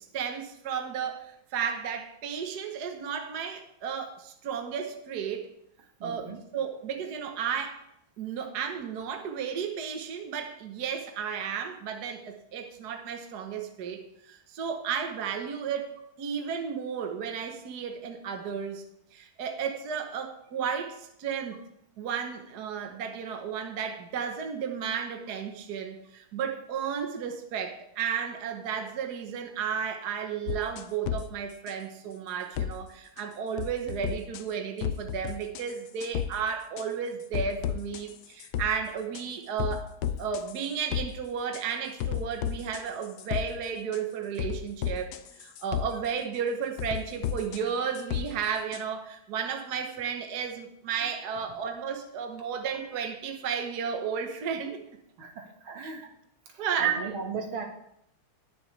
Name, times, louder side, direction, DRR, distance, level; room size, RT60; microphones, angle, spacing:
voice 1, 0.0-5.5 6.0-7.8 8.2-14.0 14.3-15.9 16.2-18.8 19.1-21.6 22.0-39.9 40.2-45.1 45.4-54.8 55.8-55.9 56.6-57.1, right 7 dB, 55° right, 4 dB, 1.4 m, -33 dB
voice 2, 6.0-6.4 55.2-56.1 56.5-57.6, right 4 dB, 70° right, 2 dB, 2.4 m, -37 dB
sound 1, 30.5-31.2 31.7-31.8 32.6-32.7 33.2-33.3 33.6-34.4 34.8-35.7 36.0-36.3 36.8-36.9 37.3-38.7 39.1-39.2 39.6-41.1 41.5-41.6 42.0-43.5 43.9-44.0 44.4-45.9 46.8-48.3 48.7-48.8, left 10 dB, 70° left, 0.9 m, -32 dB
19.5 x 6.9 x 3.3 m, 0.76 s
omnidirectional pair, 2.3 m